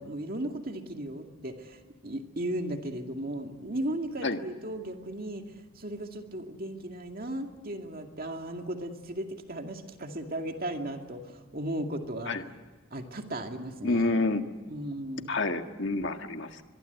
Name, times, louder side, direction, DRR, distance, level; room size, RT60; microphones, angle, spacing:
voice 1, 0.0-5.4 5.8-12.3 12.9-14.2 14.7-15.3, right 1 dB, 45° right, 4 dB, 2.2 m, -36 dB
voice 2, 13.8-14.4 15.3-16.6, left 2 dB, 55° left, 6 dB, 1.7 m, -28 dB
25.0 x 22.5 x 8.2 m, 1.4 s
head